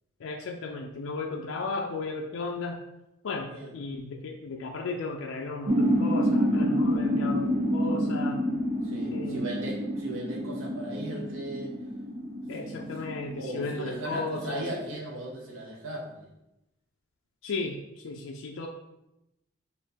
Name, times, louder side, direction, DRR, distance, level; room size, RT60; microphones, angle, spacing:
voice 1, 0.2-2.8 3.2-8.4 9.1-9.5 12.5-14.6 17.4-18.7, left 3 dB, 80° left, 1 dB, 0.4 m, -35 dB
sound 1, 5.7-14.9, equal, 30° right, 0.4 m, -28 dB
voice 2, 8.8-11.7 12.6-12.9 13.3-16.3, right 1 dB, 85° right, -1 dB, 0.8 m, -37 dB
3.6 x 2.7 x 4.3 m, 0.91 s
head